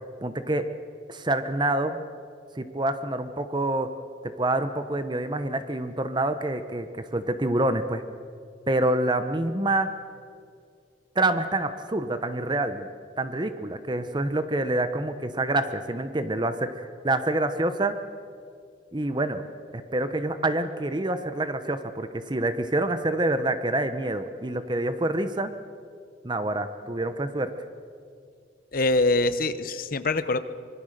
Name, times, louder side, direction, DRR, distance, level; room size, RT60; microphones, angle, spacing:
voice 1, 0.2-0.7 1.1-2.0 2.5-3.9 4.2-8.0 8.7-10.0 11.2-12.9 13.2-18.0 18.9-19.4 19.7-25.5 26.2-27.5, right 2 dB, 25° right, 10 dB, 0.9 m, -27 dB
voice 2, 28.7-30.4, left 2 dB, 50° left, 12 dB, 1.0 m, -24 dB
25.5 x 22.5 x 6.7 m, 2.3 s
head